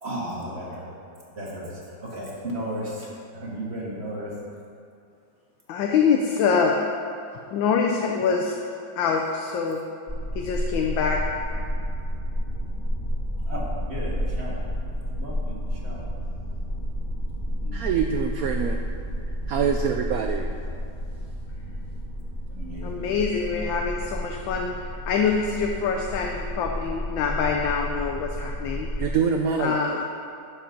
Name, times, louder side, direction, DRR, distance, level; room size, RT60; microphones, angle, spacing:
voice 1, 0.0-0.8 1.4-1.7 2.0-3.1 3.3-4.3 13.5-14.6 15.2-16.0 17.6-17.8 22.5-23.1, right 1 dB, 35° right, -5 dB, 2.0 m, -34 dB
voice 2, 5.7-6.8 7.5-8.6 9.0-9.8 10.3-11.2 22.8-24.7 25.1-28.9 29.6-30.0, left 5 dB, 80° left, 1 dB, 1.4 m, -25 dB
sound 1, 10.1-29.1, equal, 20° left, 2.0 m, -31 dB
voice 3, 17.7-18.8 19.5-20.5 29.0-30.0, right 6 dB, 80° right, 4 dB, 0.7 m, -25 dB
11.5 x 5.2 x 5.9 m, 2.5 s
omnidirectional pair, 2.1 m